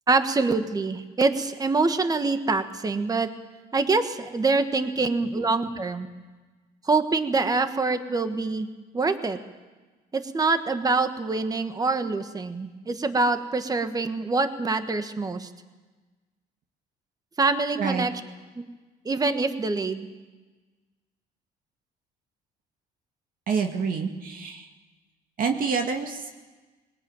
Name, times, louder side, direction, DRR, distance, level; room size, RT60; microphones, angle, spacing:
voice 1, 0.1-3.3 3.7-6.1 6.9-8.7 8.9-9.4 10.1-15.5 17.4-18.1 18.6-18.7 19.0-20.1, right 3 dB, 20° right, 8 dB, 1.6 m, -25 dB
voice 2, 23.5-24.7 25.4-26.3, right 5 dB, 55° right, 4 dB, 2.1 m, -27 dB
21.0 x 19.5 x 9.0 m, 1.3 s
cardioid pair, 110°, 17 cm